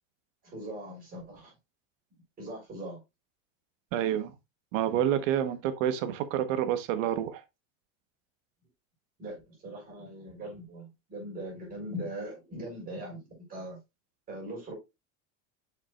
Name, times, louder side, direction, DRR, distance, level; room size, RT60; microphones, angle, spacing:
voice 1, 0.5-1.5 2.4-3.0 9.2-13.8 14.3-14.7, right 1 dB, 20° right, 4.7 m, -40 dB
voice 2, 3.9-4.3 4.7-7.4, right 10 dB, 70° right, 1.3 m, -28 dB
7.4 x 6.0 x 2.4 m
cardioid pair, 170°, 40 cm